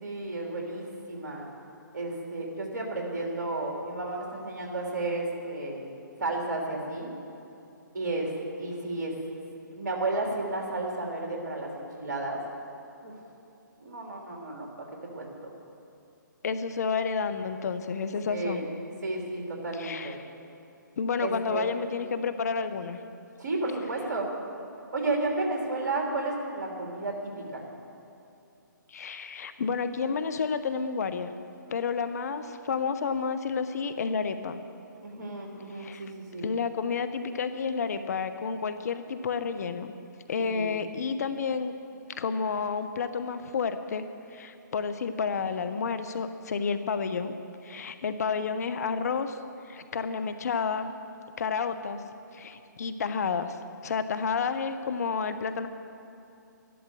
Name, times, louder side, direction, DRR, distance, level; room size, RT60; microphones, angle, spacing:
voice 1, 0.0-1.5 1.9-5.9 6.2-7.1 7.9-9.2 9.7-12.4 13.0-13.2 13.8-15.5 18.3-18.7 19.0-20.2 21.2-21.7 23.4-24.3 24.9-27.6 35.0-36.5 40.4-40.7, right 2 dB, 55° right, -1 dB, 3.4 m, -32 dB
voice 2, 16.4-18.7 19.7-20.2 21.0-23.0 28.9-31.3 31.7-34.6 35.7-36.0 36.4-39.9 40.3-41.7 42.2-44.1 44.3-47.3 47.6-49.4 49.6-50.9 51.4-52.0 52.3-55.7, left 5 dB, 50° left, 10 dB, 0.8 m, -30 dB
12.5 x 12.0 x 6.9 m, 2.8 s
figure-of-eight pair, 140°, 11 cm